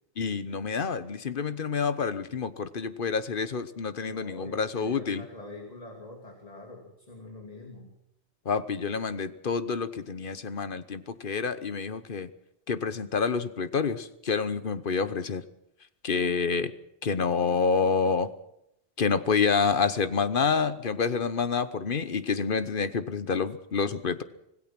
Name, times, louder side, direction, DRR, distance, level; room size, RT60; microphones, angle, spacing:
voice 1, 0.2-5.2 8.4-12.3 12.7-15.4 16.0-16.7 17.0-18.3 19.0-24.2, left 5 dB, 55° left, 13 dB, 1.2 m, -28 dB
voice 2, 4.0-7.9, left 2 dB, 40° left, 2 dB, 2.9 m, -45 dB
25.5 x 17.0 x 6.0 m, 0.79 s
omnidirectional pair, 1.1 m